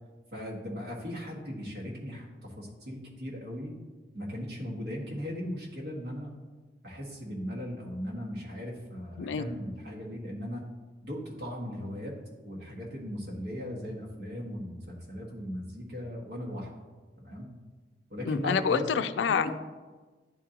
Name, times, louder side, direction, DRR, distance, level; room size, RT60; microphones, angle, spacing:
voice 1, 0.3-3.7 4.1-6.3 6.8-10.6 11.0-12.1 12.4-16.7 17.2-17.5 18.1-18.9 19.3-19.5, equal, 70° right, -3 dB, 1.6 m, -38 dB
voice 2, 18.3-19.5, left 6 dB, 85° left, 13 dB, 0.3 m, -27 dB
10.5 x 3.8 x 2.8 m, 1.3 s
head